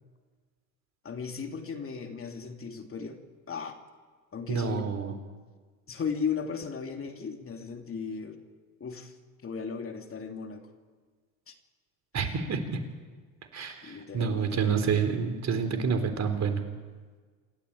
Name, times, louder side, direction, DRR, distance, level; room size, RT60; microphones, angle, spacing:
voice 1, 1.0-3.2 3.5-3.8 4.3-4.9 5.9-8.4 8.8-9.2 9.4-10.7 11.5-11.6 12.2-12.3 13.8-14.8, left 6 dB, 30° left, 4 dB, 3.1 m, -36 dB
voice 2, 4.5-5.1 12.1-12.8 13.5-16.6, right 6 dB, 40° right, 7 dB, 3.8 m, -28 dB
27.5 x 13.5 x 8.7 m, 1.5 s
hypercardioid pair, 85°, 42 cm